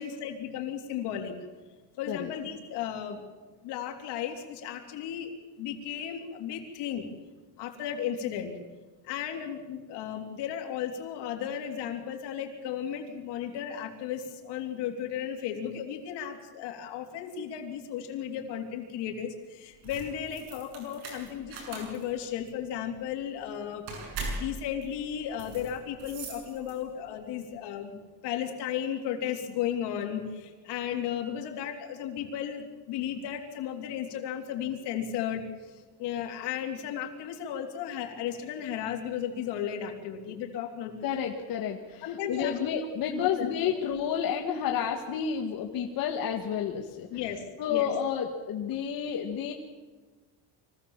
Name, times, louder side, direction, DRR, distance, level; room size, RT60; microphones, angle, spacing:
voice 1, 0.0-1.3 2.0-3.2 3.6-5.3 5.6-7.1 7.6-8.5 9.0-23.9 24.4-35.4 35.7-40.9 42.0-42.7 43.1-43.5 47.1-47.9, left 9 dB, 75° left, 3 dB, 3.4 m, -35 dB
sound 1, 19.7-27.1, right 3 dB, 75° right, 7.1 m, -41 dB
voice 2, 41.0-47.1 47.6-49.5, left 8 dB, 55° left, 2 dB, 1.9 m, -30 dB
24.5 x 16.5 x 7.4 m, 1.3 s
cardioid pair, 130°, 41 cm